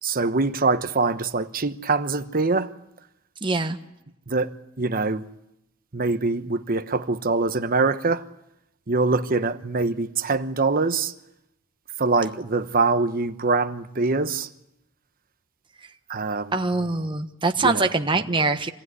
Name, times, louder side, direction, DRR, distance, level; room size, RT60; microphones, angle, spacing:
voice 1, 0.0-2.7 4.3-5.3 5.9-8.2 8.9-11.1 12.0-14.5 16.1-16.6 17.6-17.9, right 3 dB, 45° right, 1.0 m, -24 dB
voice 2, 3.4-3.8 16.5-18.7, right 3 dB, 25° right, 1.2 m, -23 dB
26.5 x 18.0 x 9.7 m
head